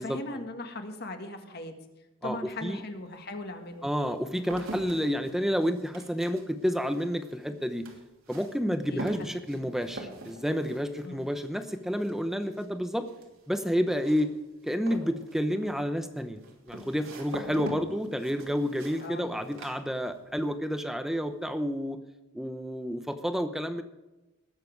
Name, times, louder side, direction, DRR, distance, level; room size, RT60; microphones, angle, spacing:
voice 1, 0.0-1.8 2.2-3.9 8.9-9.7 11.0-11.3 19.0-19.3, left 2 dB, 50° left, 5 dB, 1.8 m, -39 dB
sound 1, 3.3-20.5 20.8-21.3, right 1 dB, 80° right, 3.0 m, -44 dB
voice 2, 3.8-7.8 8.3-13.0 13.5-14.3 14.6-22.0 22.3-23.8, equal, ahead, 8 dB, 0.8 m, -30 dB
20.0 x 7.7 x 4.7 m, 1.0 s
head